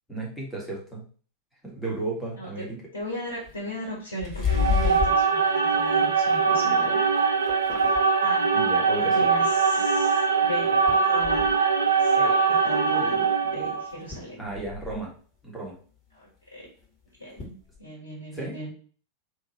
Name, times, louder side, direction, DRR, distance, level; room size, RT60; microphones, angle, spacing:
voice 1, 0.1-1.0 1.6-2.8 8.5-9.3 14.4-15.1 15.4-15.8 18.3-18.6, right 2 dB, ahead, -5 dB, 1.7 m, -34 dB
voice 2, 2.4-7.0 7.8-7.9 8.2-8.6 9.0-11.5 12.0-14.4 16.5-16.7 17.2-18.7, equal, 75° left, -4 dB, 1.8 m, -37 dB
sound 1, 3.0-3.1 3.5-3.7 4.2-5.2 5.8-6.2 6.7-6.8 7.1-8.1 10.0-10.1 10.9-11.6 13.1-13.2 13.6-13.7 13.9-15.1 16.8-16.9 17.4-17.8, left 7 dB, 25° left, 2.1 m, -30 dB
sound 2, 4.4-13.9, right 5 dB, 70° right, 0.5 m, -22 dB
3.5 x 3.2 x 4.1 m, 0.42 s
figure-of-eight pair, 90°, 0 cm